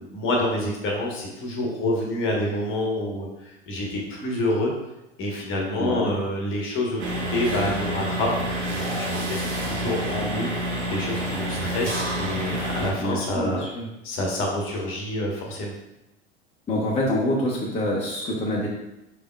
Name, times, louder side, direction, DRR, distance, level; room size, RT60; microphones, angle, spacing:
voice 1, 0.0-3.3 3.7-4.7 5.2-10.5 10.9-13.6 14.0-15.7, left 1 dB, 35° left, -1 dB, 1.1 m, -27 dB
voice 2, 5.8-6.1 13.0-13.8 16.7-18.7, left 1 dB, 20° left, -4 dB, 0.9 m, -26 dB
sound 1, 7.0-12.9, right 1 dB, 80° right, 0.9 m, -28 dB
5.0 x 3.6 x 2.3 m, 0.92 s
figure-of-eight pair, 85°, 34 cm